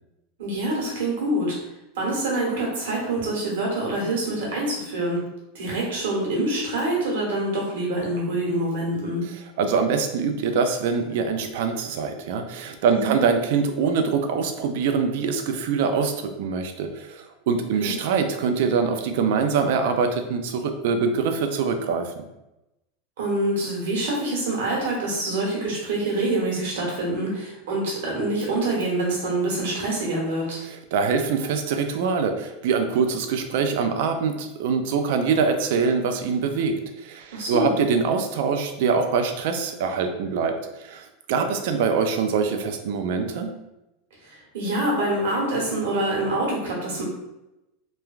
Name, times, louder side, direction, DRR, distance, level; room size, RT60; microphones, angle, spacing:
voice 1, 0.4-1.6 2.0-5.2 5.5-9.2 12.9-13.2 17.8-17.9 23.2-30.6 37.3-37.7 44.3-47.0, right 1 dB, 85° right, -3 dB, 1.1 m, -26 dB
voice 2, 9.3-22.2 30.6-43.6, right 5 dB, 60° right, 7 dB, 0.3 m, -24 dB
3.0 x 2.2 x 2.3 m, 0.95 s
supercardioid pair, 170°, 0 cm